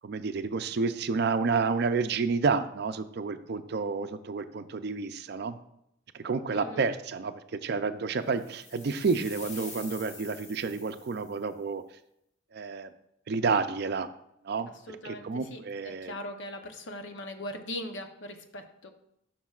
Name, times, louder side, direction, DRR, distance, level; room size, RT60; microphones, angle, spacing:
voice 1, 0.0-5.6 6.1-11.8 12.5-12.9 13.3-14.1 14.4-16.1, right 4 dB, 55° right, 10 dB, 0.4 m, -30 dB
voice 2, 6.5-6.8 14.9-15.2 15.5-15.6 16.0-18.9, left 1 dB, 65° left, 6 dB, 0.8 m, -39 dB
sound 1, 8.4-11.4, left 3 dB, 35° left, 1.2 m, -46 dB
11.5 x 6.0 x 2.4 m, 0.79 s
head